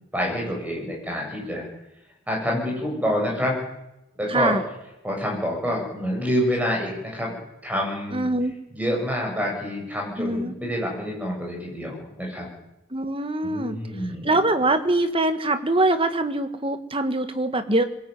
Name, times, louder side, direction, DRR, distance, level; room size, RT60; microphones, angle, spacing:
voice 1, 0.1-1.7 2.3-3.6 4.2-4.5 5.0-7.4 7.6-8.3 8.7-12.5 13.4-14.3, equal, 5° right, -1 dB, 7.7 m, -27 dB
voice 2, 4.3-4.6 8.1-8.5 10.2-10.5 12.9-13.8 14.2-17.8, right 2 dB, 25° right, 10 dB, 1.5 m, -23 dB
22.0 x 17.5 x 9.4 m, 0.90 s
head